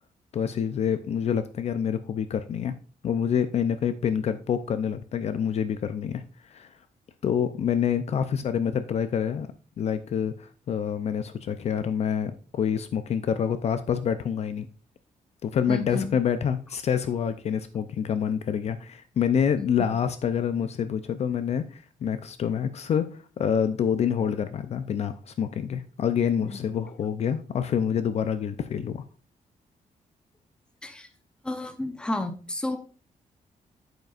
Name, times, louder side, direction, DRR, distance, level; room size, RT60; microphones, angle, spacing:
voice 1, 0.3-2.8 3.0-6.7 7.2-9.5 9.8-14.7 15.4-23.1 23.4-29.0, left 8 dB, 50° left, 11 dB, 0.5 m, -27 dB
voice 2, 15.7-16.1 19.6-19.9 26.2-26.6 30.8-31.1 31.4-32.8, left 2 dB, 5° left, 7 dB, 0.7 m, -32 dB
9.1 x 7.9 x 2.4 m, 0.37 s
wide cardioid pair, 170°, 14 cm